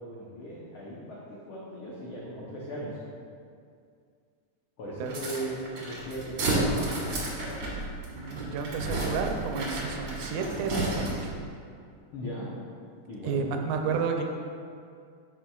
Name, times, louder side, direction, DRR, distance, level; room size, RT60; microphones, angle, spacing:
voice 1, 0.0-3.0 4.8-7.3 12.1-12.5 13.1-13.7, right 1 dB, 90° left, -6 dB, 1.1 m, -38 dB
sound 1, 5.1-11.4, right 2 dB, 55° right, 1.7 m, -32 dB
voice 2, 8.1-11.3 13.2-14.2, right 5 dB, 80° right, 4 dB, 1.9 m, -31 dB
9.4 x 6.0 x 2.3 m, 2.3 s
omnidirectional pair, 3.6 m